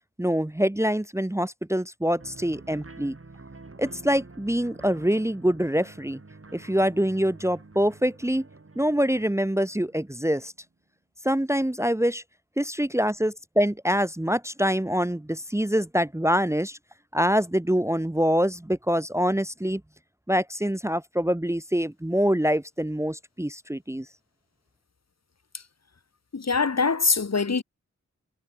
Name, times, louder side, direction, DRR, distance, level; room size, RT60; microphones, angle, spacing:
voice 1, 0.2-3.1 3.8-6.2 6.5-8.5 8.8-10.5 11.2-12.2 12.6-16.8 17.1-19.8 20.3-24.1, equal, 10° right, 0.9 m, -25 dB
sound 1, 2.2-10.6, right 3 dB, 45° right, 4.4 m, -48 dB
voice 2, 26.3-27.6, left 4 dB, 60° left, 1.6 m, -23 dB
wide cardioid pair, 70°, 30 cm